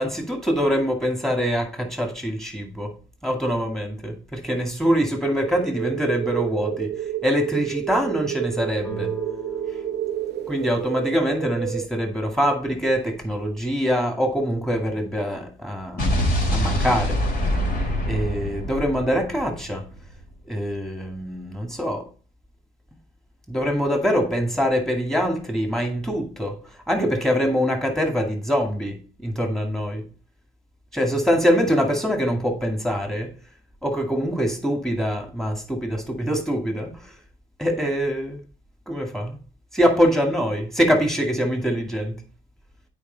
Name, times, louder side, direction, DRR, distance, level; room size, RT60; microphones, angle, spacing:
voice 1, 0.0-2.9 3.2-6.9 7.2-9.2 10.5-16.1 16.5-17.2 18.1-19.9 20.5-22.1 23.5-26.6 26.9-30.0 30.9-33.3 33.8-37.0 37.6-38.4 38.9-39.4 39.7-42.1, equal, ahead, 2.2 m, -24 dB
sound 1, 5.4-11.9, right 11 dB, 60° right, 0.6 m, -30 dB
sound 2, 8.8-12.4, left 1 dB, 20° left, 2.7 m, -41 dB
Explosion, 16.0-20.1, equal, 55° left, 3.4 m, -24 dB
8.7 x 4.9 x 4.0 m
cardioid pair, 90°, 20 cm